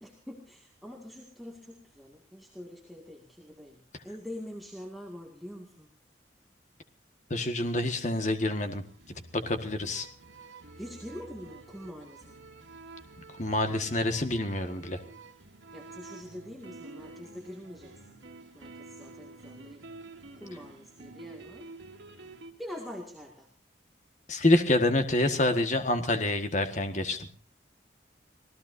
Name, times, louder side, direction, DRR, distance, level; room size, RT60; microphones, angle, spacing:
voice 1, 0.0-5.9 10.8-12.5 15.7-18.2 18.5-19.8 20.3-21.7 22.6-23.5, equal, ahead, -2 dB, 2.1 m, -44 dB
voice 2, 7.3-8.8 9.3-10.1 13.4-15.0 24.3-27.3, left 1 dB, 40° left, 7 dB, 1.7 m, -27 dB
sound 1, 8.9-22.5, right 3 dB, 75° right, 2.9 m, -49 dB
27.0 x 18.0 x 2.7 m, 0.43 s
head